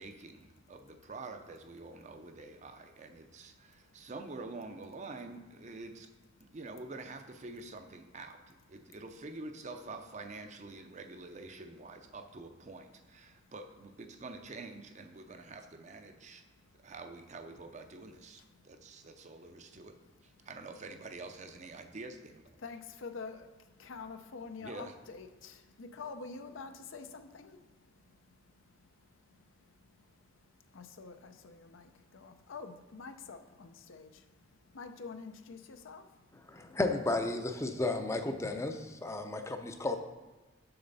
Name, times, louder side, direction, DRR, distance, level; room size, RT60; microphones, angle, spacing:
voice 1, 0.0-6.1 6.4-16.4 16.8-20.0 20.5-22.4 24.6-24.9, right 3 dB, 35° right, 7 dB, 0.5 m, -47 dB
voice 2, 3.7-4.1 6.4-6.5 8.8-8.9 13.3-13.5 16.4-16.9 18.4-20.1 20.4-20.5 22.6-36.8, left 4 dB, 80° left, 8 dB, 0.6 m, -49 dB
voice 3, 36.5-40.0, left 2 dB, 15° left, 6 dB, 0.5 m, -33 dB
6.7 x 6.4 x 4.0 m, 1.2 s
head